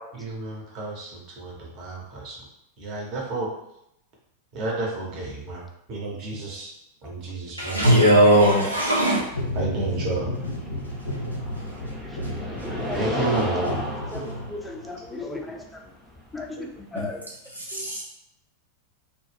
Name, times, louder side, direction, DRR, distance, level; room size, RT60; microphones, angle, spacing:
voice 1, 0.1-2.4 2.8-3.5 4.5-5.6 5.9-6.7 7.0-7.9 9.5-10.2 12.9-13.7, right 3 dB, 40° right, -3 dB, 0.8 m, -30 dB
voice 2, 7.6-9.2 17.7-18.0, right 1 dB, 90° right, -4 dB, 0.6 m, -18 dB
sound 1, 8.4-17.2, left 1 dB, 10° right, 0.7 m, -35 dB
sound 2, 9.3-14.8, left 1 dB, 85° left, 0.4 m, -33 dB
voice 3, 12.7-13.5 14.1-15.8 16.3-17.3 17.7-17.9, left 2 dB, 10° left, 2 dB, 0.3 m, -37 dB
2.2 x 2.1 x 3.3 m, 0.81 s
figure-of-eight pair, 90°, 0 cm